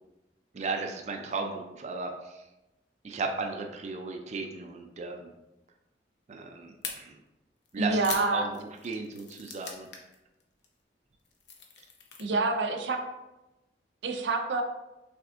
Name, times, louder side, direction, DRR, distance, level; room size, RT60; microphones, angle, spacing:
voice 1, 0.5-2.4 3.0-5.3 6.3-7.2 7.7-8.0 8.3-9.9, right 4 dB, 40° right, 3 dB, 0.4 m, -35 dB
sound 1, 6.8-6.9 7.7-10.1 10.4-10.7 11.1-12.2, left 6 dB, 80° left, 0.8 m, -40 dB
voice 2, 7.8-8.5 12.2-13.0 14.0-14.6, right 3 dB, 90° right, 4 dB, 0.6 m, -27 dB
6.0 x 3.4 x 2.5 m, 0.96 s
head